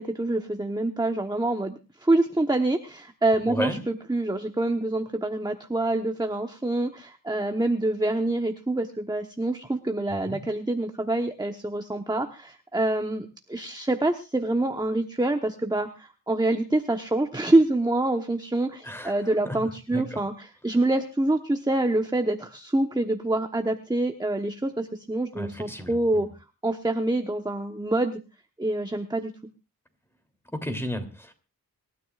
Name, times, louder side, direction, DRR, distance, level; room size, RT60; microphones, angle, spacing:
voice 1, 0.0-1.7 2.0-26.3 26.6-28.2 28.6-29.3, right 2 dB, 10° right, 6 dB, 1.1 m, -26 dB
voice 2, 3.5-3.8 10.1-10.4 18.8-19.1 19.4-19.6 19.9-20.2 25.4-26.2 30.5-31.3, equal, 5° left, 6 dB, 3.0 m, -33 dB
26.0 x 13.0 x 2.5 m, 0.31 s
wide cardioid pair, 80°, 35 cm